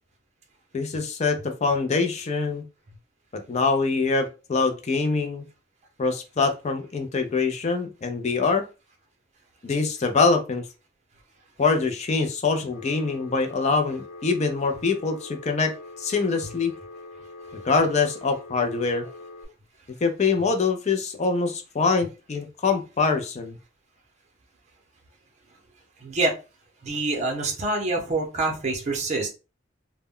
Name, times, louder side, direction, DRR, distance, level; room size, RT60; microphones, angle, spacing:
voice 1, 0.7-2.6 3.5-5.4 6.0-8.6 9.6-10.6 11.6-15.7 16.0-16.7 17.6-19.1 20.0-23.6, left 4 dB, 35° left, 6 dB, 0.4 m, -24 dB
Telephone, 12.7-19.4, left 2 dB, 80° left, 0.8 m, -43 dB
voice 2, 26.0-26.4 26.8-29.3, right 2 dB, 35° right, 0 dB, 0.6 m, -26 dB
2.1 x 2.1 x 3.5 m, 0.31 s
head